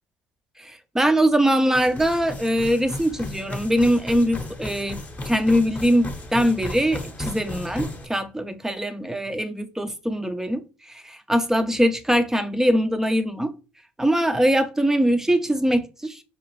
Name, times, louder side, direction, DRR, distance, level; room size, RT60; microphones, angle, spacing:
voice 1, 0.6-5.0 5.3-10.6 11.0-13.5 14.0-16.2, equal, 5° right, 0.6 m, -22 dB
sound 1, 1.7-8.1, left 2 dB, 25° left, 0.9 m, -35 dB
5.1 x 2.4 x 3.1 m
hypercardioid pair, 55°, 6 cm